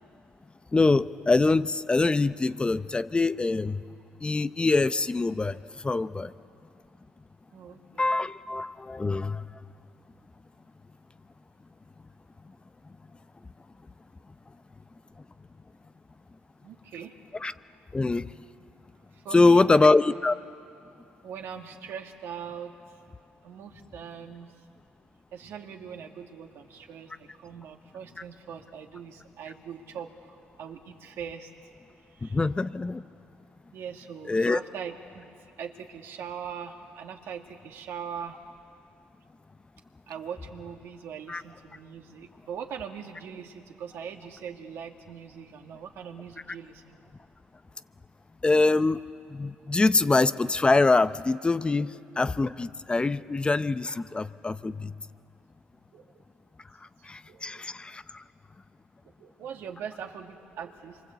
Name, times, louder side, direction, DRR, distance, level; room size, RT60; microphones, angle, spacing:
voice 1, 0.7-3.8 4.2-6.3 8.0-9.5 17.4-17.5 17.9-18.3 19.3-20.3 32.2-33.1 34.3-34.6 41.3-41.4 48.4-54.9 57.0-58.2, left 3 dB, 20° left, 13 dB, 0.7 m, -24 dB
voice 2, 7.5-8.1 16.6-17.1 19.1-19.9 21.2-23.0 23.4-24.5 25.3-31.5 32.1-32.4 33.7-35.3 35.6-38.4 40.1-47.0 53.2-53.4 55.9-56.2 57.3-57.7 59.2-61.0, right 7 dB, 70° right, 3 dB, 2.1 m, -41 dB
26.5 x 24.0 x 8.3 m, 2.5 s
supercardioid pair, 70°, 4 cm